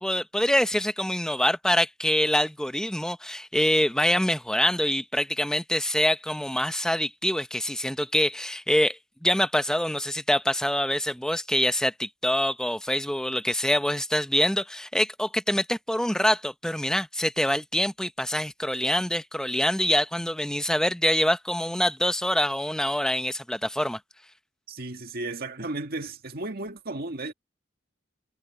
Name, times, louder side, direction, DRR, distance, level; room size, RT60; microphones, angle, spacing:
voice 1, 0.0-24.0, left 1 dB, 5° left, 0.9 m, -25 dB
voice 2, 24.7-27.3, right 2 dB, 55° right, 1.8 m, -34 dB
head